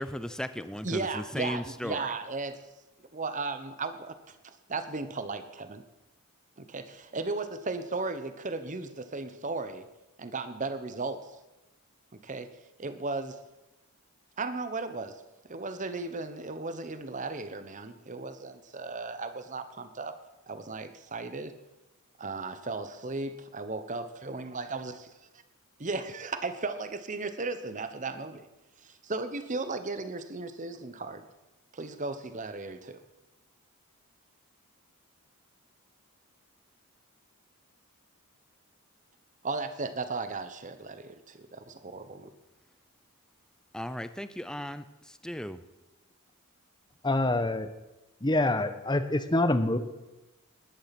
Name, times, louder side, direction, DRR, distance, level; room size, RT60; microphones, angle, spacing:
voice 1, 0.0-2.1 43.7-45.6, equal, 5° left, 12 dB, 0.6 m, -36 dB
voice 2, 0.8-2.6 3.1-5.8 6.6-9.9 10.2-11.3 12.2-12.5 12.8-13.4 14.4-15.2 15.5-20.1 20.5-21.5 22.2-25.0 25.8-28.4 28.8-31.2 31.7-33.0 39.4-42.3, right 3 dB, 35° right, 10 dB, 1.0 m, -36 dB
voice 3, 47.0-47.7 48.2-49.8, left 2 dB, 20° left, 10 dB, 1.0 m, -26 dB
19.5 x 10.5 x 6.0 m, 1.0 s
head